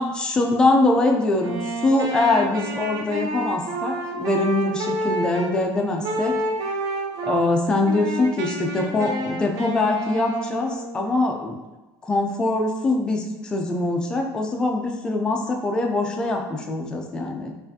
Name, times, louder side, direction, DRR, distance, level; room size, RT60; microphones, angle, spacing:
voice 1, 0.0-6.4 7.3-11.6 12.0-17.5, left 2 dB, 10° left, 2 dB, 0.3 m, -23 dB
Wind instrument woodwind instrument, 1.3-5.5 6.0-7.4 7.8-11.1, right 1 dB, 45° right, 0.6 m, -29 dB
5.5 x 2.4 x 2.6 m, 1.1 s
cardioid pair, 180°, 8 cm